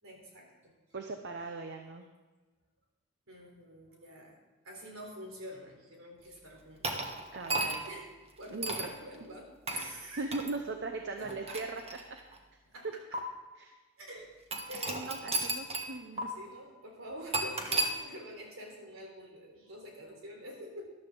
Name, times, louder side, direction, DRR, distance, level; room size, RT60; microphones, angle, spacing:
voice 1, 0.0-0.7 3.3-4.4 4.6-7.0 7.9-8.1 8.4-10.4 11.2-11.6 12.7-13.2 14.0-14.3 14.7-15.5 16.2-20.9, equal, 75° right, 0 dB, 3.8 m, -47 dB
voice 2, 0.9-2.0 7.3-7.8 8.5-8.9 9.8-9.9 10.2-11.8 12.1-12.2 13.6-13.7 14.8-16.3, right 3 dB, 55° right, 5 dB, 0.9 m, -39 dB
sound 1, 6.8-8.0 8.6-8.9 9.7-9.9 10.3-10.5 11.2-12.4 13.1-13.2 14.5-15.9 16.2-16.3 17.3-17.9, right 2 dB, 30° right, 1.4 m, -33 dB
13.5 x 12.0 x 3.9 m, 1.3 s
head